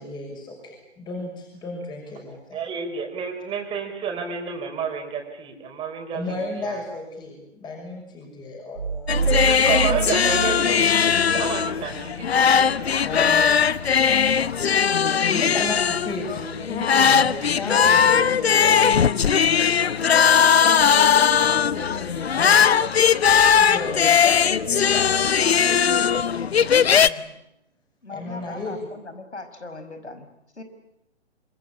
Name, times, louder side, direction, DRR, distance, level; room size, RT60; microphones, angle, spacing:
voice 1, 0.0-2.6 6.1-9.6 13.0-13.6 13.8-14.4 14.9-19.0 19.7-22.7 23.5-27.3 28.1-28.8, left 2 dB, 15° left, 1 dB, 6.4 m, -35 dB
voice 2, 2.5-6.8 9.4-12.8 13.1-13.2 14.1-14.2 22.3-23.2 23.4-24.0 28.3-28.6, right 6 dB, 15° right, 4 dB, 4.9 m, -31 dB
sound 1, 8.8-11.7, right 5 dB, 80° right, 1.1 m, -27 dB
sound 2, 9.1-27.1, left 7 dB, 65° left, 1.0 m, -19 dB
sound 3, 16.9-18.4, right 5 dB, 50° right, 4.6 m, -41 dB
voice 3, 28.0-30.6, left 3 dB, 80° left, 9 dB, 5.4 m, -39 dB
26.0 x 24.0 x 8.7 m, 0.81 s
figure-of-eight pair, 135°, 34 cm